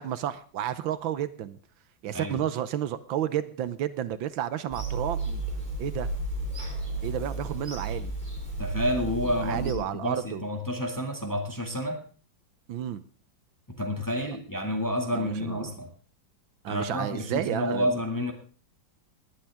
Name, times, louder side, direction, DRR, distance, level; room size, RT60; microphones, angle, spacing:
voice 1, 0.0-1.6 2.0-5.4 5.8-6.1 7.0-8.1 9.4-10.4 12.7-13.0 15.1-15.7 16.6-17.9, right 10 dB, 85° right, 14 dB, 1.6 m, -31 dB
Bird vocalization bird call bird song / Telephone, 4.7-9.7, right 2 dB, 25° right, 3.0 m, -33 dB
voice 2, 8.6-12.0 13.7-15.9 16.7-18.3, equal, 10° left, 3 dB, 1.9 m, -30 dB
19.5 x 12.0 x 3.5 m, 0.39 s
omnidirectional pair, 2.1 m